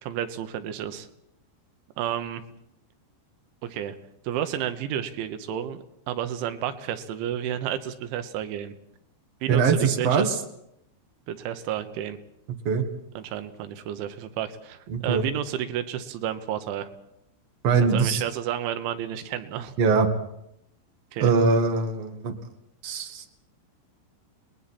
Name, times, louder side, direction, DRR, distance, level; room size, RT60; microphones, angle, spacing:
voice 1, 0.0-1.1 2.0-2.4 3.6-4.0 4.3-5.8 6.1-8.7 9.4-10.4 11.3-12.2 13.2-16.9 17.7-19.7 21.1-21.3, right 10 dB, 85° right, 9 dB, 3.5 m, -31 dB
voice 2, 9.5-10.3 12.6-12.8 14.9-15.2 17.6-18.2 19.8-20.1 21.2-22.3 22.8-23.2, right 5 dB, 65° right, 3 dB, 1.5 m, -22 dB
30.0 x 20.5 x 4.3 m, 0.79 s
omnidirectional pair, 5.3 m